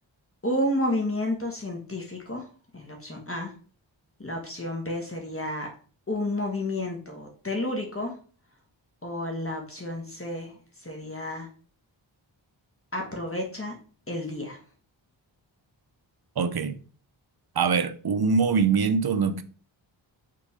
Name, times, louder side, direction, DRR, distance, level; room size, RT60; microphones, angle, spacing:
voice 1, 0.4-2.5 2.7-3.5 4.2-5.7 6.1-8.1 9.0-11.5 12.9-13.7 14.1-14.6, left 1 dB, 30° left, 1.5 m, -31 dB
voice 2, 16.4-16.8 17.6-19.4, right 5 dB, 50° right, 0.7 m, -23 dB
5.8 x 3.8 x 4.9 m
wide cardioid pair, 70°, 47 cm